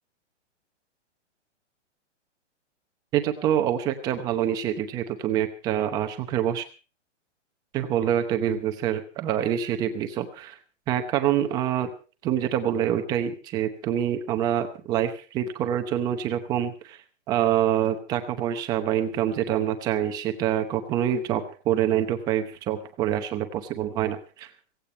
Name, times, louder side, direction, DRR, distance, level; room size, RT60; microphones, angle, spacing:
voice 1, 3.1-6.6 7.7-10.6 10.9-11.9 12.2-17.0 17.3-24.5, right 10 dB, 10° right, 7 dB, 0.8 m, -26 dB
17.0 x 16.0 x 4.4 m, 0.36 s
hypercardioid pair, 175°, 36 cm